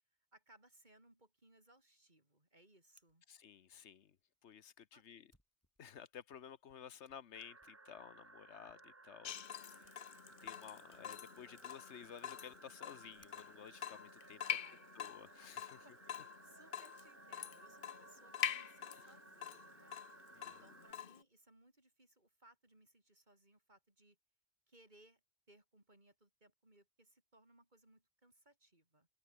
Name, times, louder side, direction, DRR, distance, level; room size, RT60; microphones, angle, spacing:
voice 1, 0.3-3.2 4.9-5.0 14.4-14.9 15.4-20.0 20.4-24.2 24.7-25.2 25.5-29.1, right 1 dB, 40° right, 5.1 m, -67 dB
Fire, 2.9-15.4, equal, 10° left, 6.0 m, -79 dB
voice 2, 3.3-4.2 4.4-5.3 5.8-9.9 10.4-14.4 15.0-15.8 18.9-19.1 20.3-20.5, left 8 dB, 80° left, 1.2 m, -54 dB
sound 1, 7.3-20.9, right 2 dB, 15° right, 0.6 m, -60 dB
Water tap faucet / Drip, 9.2-21.2, left 9 dB, 55° left, 0.9 m, -45 dB
omnidirectional pair, 1.2 m